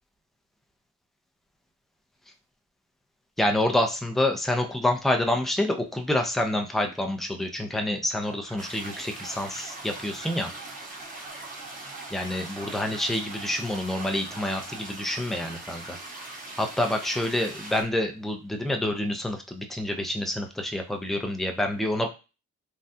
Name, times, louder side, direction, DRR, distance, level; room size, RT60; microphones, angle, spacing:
voice 1, 3.4-10.5 12.1-16.0 16.6-22.1, left 1 dB, ahead, 3 dB, 0.5 m, -27 dB
sound 1, 8.2-14.9, right 4 dB, 90° right, 0.8 m, -48 dB
sound 2, 8.6-17.8, right 2 dB, 25° right, 1.2 m, -41 dB
3.4 x 2.3 x 2.7 m, 0.30 s
cardioid pair, 90°, 30 cm